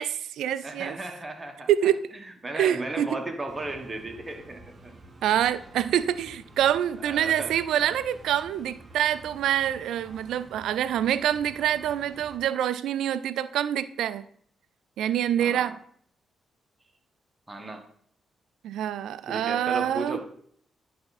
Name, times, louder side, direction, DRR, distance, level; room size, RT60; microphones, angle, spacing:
voice 1, 0.0-1.0 1.7-2.0 2.5-3.2 5.2-14.3 15.0-15.8 18.6-20.2, right 10 dB, 75° right, 0.3 m, -26 dB
voice 2, 0.6-1.7 2.4-4.9 7.0-7.6 15.4-15.8 17.5-17.8 19.3-20.3, right 2 dB, 25° right, 1.4 m, -35 dB
sound 1, 3.5-12.4, right 2 dB, 45° right, 1.1 m, -49 dB
10.5 x 3.5 x 4.2 m
hypercardioid pair, 45°, 0 cm